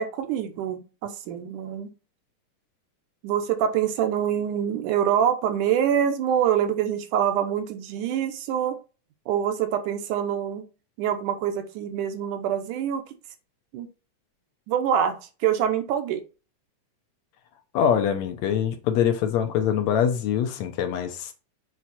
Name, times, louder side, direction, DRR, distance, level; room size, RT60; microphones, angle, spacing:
voice 1, 0.0-1.9 3.2-8.8 9.3-10.7 11.0-13.0 13.7-13.9 14.7-16.2, right 9 dB, 80° right, 2.5 m, -25 dB
voice 2, 17.7-21.3, left 8 dB, 70° left, 1.9 m, -24 dB
7.5 x 4.7 x 4.2 m
omnidirectional pair, 3.6 m